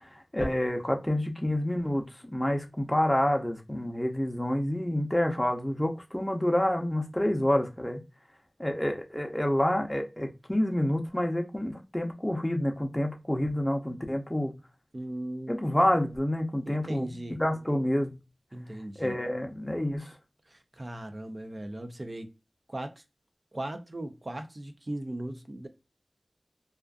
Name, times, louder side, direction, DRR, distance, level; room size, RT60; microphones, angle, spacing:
voice 1, 0.0-8.0 8.6-14.5 15.5-17.1 17.4-18.2 19.0-20.1, left 1 dB, 15° left, 0.6 m, -28 dB
voice 2, 14.9-15.6 16.7-17.4 18.5-19.1 20.5-22.3 22.7-22.9 23.5-25.7, right 1 dB, 45° right, 0.5 m, -38 dB
2.4 x 2.4 x 2.2 m
wide cardioid pair, 55°, 0 cm